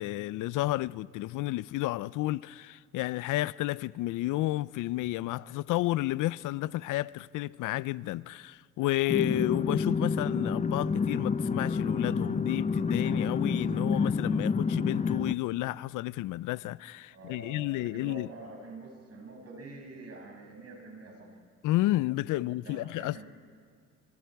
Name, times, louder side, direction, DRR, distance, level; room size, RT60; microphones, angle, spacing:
voice 1, 0.0-18.3 21.6-23.2, left 17 dB, 85° left, 0.5 m, -31 dB
sound 1, 9.1-15.3, left 5 dB, 25° left, 0.6 m, -29 dB
voice 2, 17.1-21.4 22.3-23.3, right 2 dB, 55° right, 6.4 m, -46 dB
25.0 x 24.5 x 4.7 m
cardioid pair, 90°, 30 cm